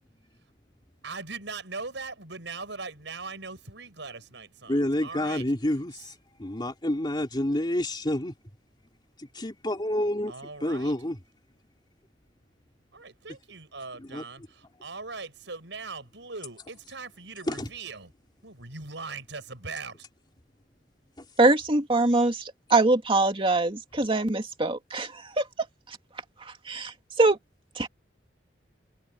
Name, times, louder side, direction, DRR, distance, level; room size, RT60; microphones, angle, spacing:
voice 1, 1.0-5.4 5.9-6.0 10.3-10.9 12.9-18.1 18.4-20.0, right 4 dB, 70° right, 7.4 m, -40 dB
voice 2, 4.7-6.1 6.4-8.3 9.2-10.3 10.6-11.2 14.0-14.2 17.5-17.7, left 1 dB, 25° left, 3.0 m, -28 dB
voice 3, 21.4-25.5 26.4-27.4 27.8-27.9, right 2 dB, 30° right, 2.4 m, -23 dB
head